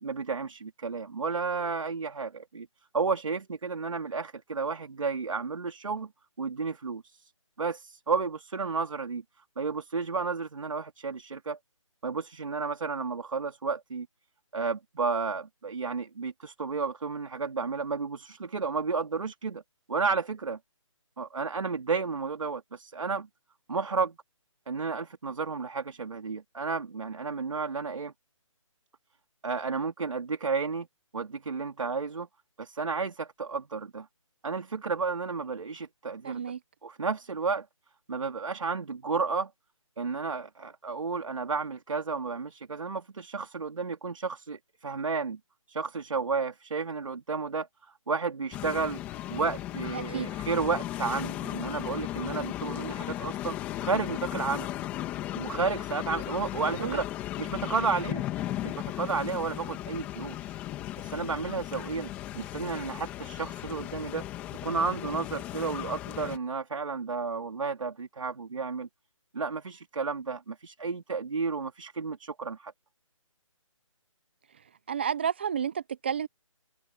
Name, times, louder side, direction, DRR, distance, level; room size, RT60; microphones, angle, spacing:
voice 1, 0.0-2.7 2.9-6.1 6.4-7.3 7.6-9.2 9.6-11.6 12.0-14.1 14.5-19.6 19.9-20.6 21.2-23.3 23.7-24.2 24.7-28.1 29.4-30.9 31.1-32.3 32.6-34.1 34.4-36.4 36.8-37.7 38.1-39.5 40.0-45.4 45.7-49.0 49.3-54.7 55.3-57.1 57.4-58.3 58.6-60.6 61.0-62.1 62.3-64.3 64.6-68.9 69.3-72.7, right 4 dB, 70° right, 2.7 m, -32 dB
voice 2, 36.2-36.6 49.9-50.3 56.6-57.0 74.9-76.3, right 8 dB, 20° right, 0.6 m, -31 dB
sound 1, 48.5-66.4, left 14 dB, 10° left, 2.0 m, -36 dB
hypercardioid pair, 175°, 17 cm